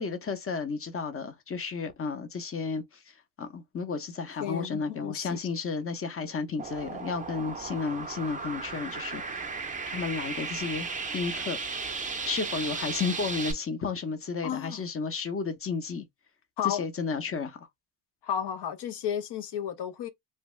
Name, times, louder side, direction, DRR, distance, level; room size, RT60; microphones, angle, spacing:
voice 1, 0.0-9.5 9.9-11.6 12.2-16.0 16.6-17.7, left 5 dB, 25° left, 0.9 m, -33 dB
voice 2, 4.4-5.4 14.4-14.8 16.6-16.8 18.2-20.1, left 9 dB, 55° left, 0.9 m, -32 dB
sound 1, 6.6-13.5, right 4 dB, 15° right, 0.6 m, -35 dB
3.3 x 2.3 x 3.1 m
cardioid pair, 100°, 49 cm